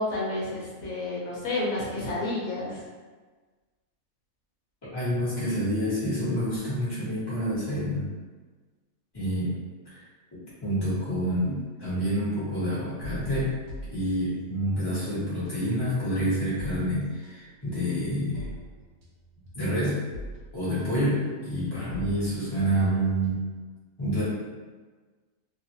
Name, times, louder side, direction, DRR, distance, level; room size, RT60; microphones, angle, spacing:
voice 1, 0.0-2.8, left 2 dB, 75° left, -6 dB, 1.2 m, -30 dB
voice 2, 4.9-8.1 9.1-9.5 9.8-10.0 10.6-13.5 13.9-18.5 19.5-20.0 20.5-23.4 24.0-24.2, equal, 20° left, -10 dB, 1.1 m, -28 dB
sound 1, 13.0-14.7 15.0-23.7, left 1 dB, 75° right, 1.0 m, -43 dB
2.8 x 2.4 x 2.6 m, 1.4 s
omnidirectional pair, 1.5 m